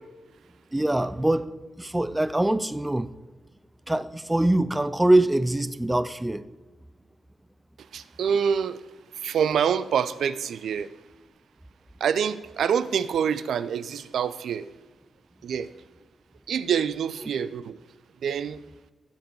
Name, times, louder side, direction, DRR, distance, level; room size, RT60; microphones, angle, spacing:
voice 1, 0.7-1.5 1.8-3.1 3.9-6.5, right 1 dB, 10° right, 13 dB, 0.3 m, -23 dB
voice 2, 7.9-8.8 9.1-10.9 12.0-14.7 15.4-15.7 16.5-17.8 18.2-18.6, right 7 dB, 75° right, 14 dB, 0.5 m, -26 dB
15.5 x 5.2 x 4.7 m, 1.2 s
wide cardioid pair, 160°, 0 cm